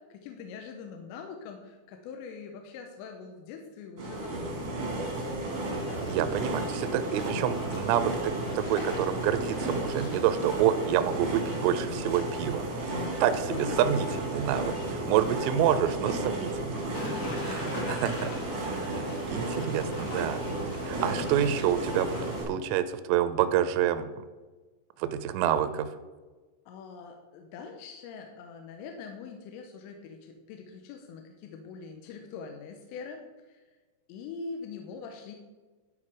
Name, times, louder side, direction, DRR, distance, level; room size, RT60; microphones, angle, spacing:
voice 1, 0.0-4.9 13.3-14.2 14.9-15.4 15.8-17.0 26.7-33.2 33.5-33.7 34.1-35.4, left 5 dB, 80° left, 3 dB, 2.8 m, -43 dB
sound 1, 4.0-22.5, right 2 dB, 55° right, 1.5 m, -33 dB
sound 2, 5.7-14.8 16.9-22.4, left 2 dB, 55° left, 1.7 m, -43 dB
voice 2, 6.0-12.7 13.2-16.7 17.4-18.3 18.6-20.4 20.7-22.2 22.5-24.1 25.0-25.9, right 10 dB, 90° right, 11 dB, 3.2 m, -28 dB
12.5 x 4.7 x 4.8 m, 1.3 s
omnidirectional pair, 5.6 m